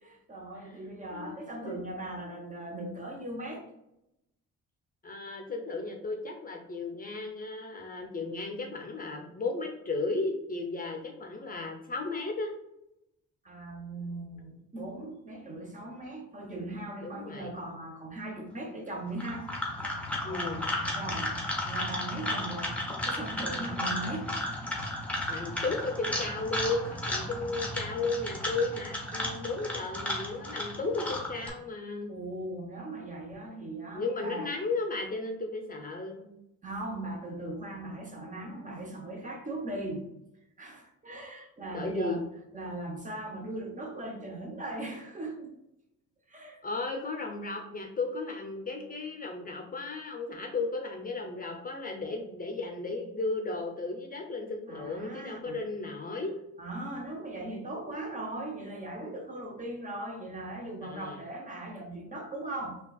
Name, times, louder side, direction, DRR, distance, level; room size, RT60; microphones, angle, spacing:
voice 1, 0.0-3.7 13.4-19.5 20.2-21.3 21.6-24.3 32.1-34.5 36.6-40.1 40.6-42.3 42.5-45.5 46.3-46.6 54.7-55.6 56.6-62.8, right 1 dB, 25° right, 2 dB, 0.8 m, -39 dB
voice 2, 5.0-12.6 17.0-17.5 20.2-20.7 25.3-32.1 33.9-36.3 41.7-42.2 46.6-56.4 60.8-61.2, left 3 dB, 30° left, 2 dB, 0.6 m, -34 dB
sound 1, 19.1-31.5, left 1 dB, 5° left, 1.0 m, -34 dB
5.4 x 2.3 x 2.3 m, 0.86 s
cardioid pair, 90°, 30 cm